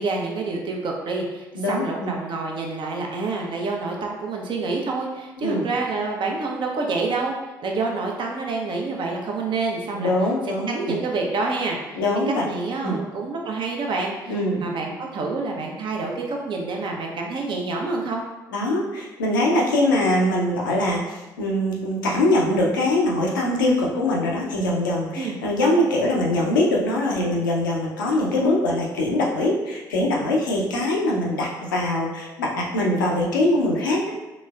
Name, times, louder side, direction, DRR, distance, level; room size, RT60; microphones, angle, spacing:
voice 1, 0.0-7.3 7.6-10.1 10.7-12.0 12.4-18.2 25.2-25.4, right 3 dB, 50° right, 0 dB, 0.8 m, -27 dB
voice 2, 1.5-2.1 5.4-5.6 9.9-11.0 12.0-12.4 12.8-13.0 14.3-14.7 18.5-34.0, left 1 dB, 85° left, -2 dB, 0.6 m, -22 dB
4.0 x 3.2 x 2.4 m, 1.1 s
figure-of-eight pair, 50°, 10 cm